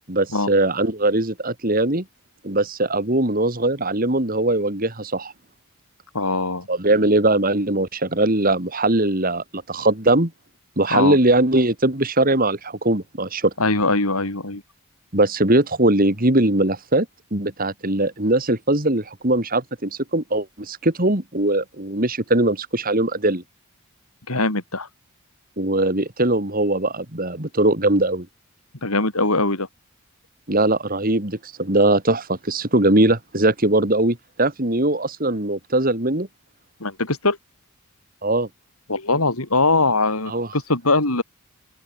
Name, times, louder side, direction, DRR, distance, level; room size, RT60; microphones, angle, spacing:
voice 1, 0.1-2.0 2.4-5.3 6.7-10.3 10.8-13.5 15.1-17.1 17.3-23.4 25.6-28.3 30.5-36.3 38.2-38.5 40.3-40.5, right 2 dB, 40° right, 2.8 m, -20 dB
voice 2, 6.1-6.7 10.9-11.2 13.6-14.6 24.3-24.9 28.8-29.7 36.8-37.4 38.9-41.2, left 3 dB, 80° left, 5.1 m, -21 dB
open air
head